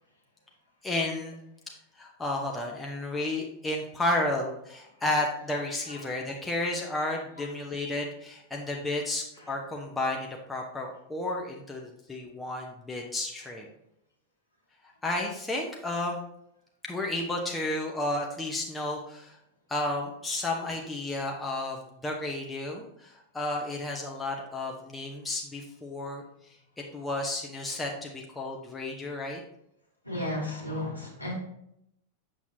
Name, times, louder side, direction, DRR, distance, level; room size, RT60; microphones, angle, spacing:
voice 1, 0.8-1.4 2.0-13.7 15.0-16.2 16.8-19.4 19.7-21.8 22.0-26.2 26.9-29.4, left 2 dB, 10° left, 0 dB, 0.8 m, -32 dB
voice 2, 30.0-31.3, left 1 dB, 90° left, -3 dB, 1.2 m, -33 dB
7.0 x 6.1 x 2.7 m, 0.77 s
figure-of-eight pair, 90°, 0 cm